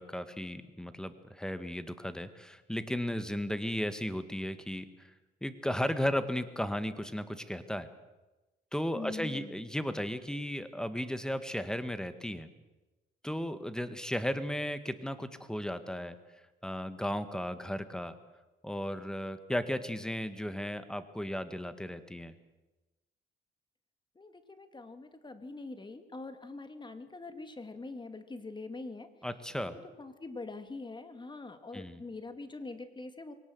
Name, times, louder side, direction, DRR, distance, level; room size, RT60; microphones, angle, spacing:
voice 1, 0.0-4.8 5.4-7.9 8.7-12.5 13.2-16.2 16.6-18.1 18.6-22.3 29.2-29.8 31.7-32.0, equal, 5° left, 11 dB, 1.8 m, -35 dB
voice 2, 8.9-9.5 24.2-29.1 29.6-33.3, left 3 dB, 25° left, 9 dB, 2.4 m, -44 dB
23.0 x 18.0 x 7.9 m, 1.1 s
cardioid pair, 90°, 20 cm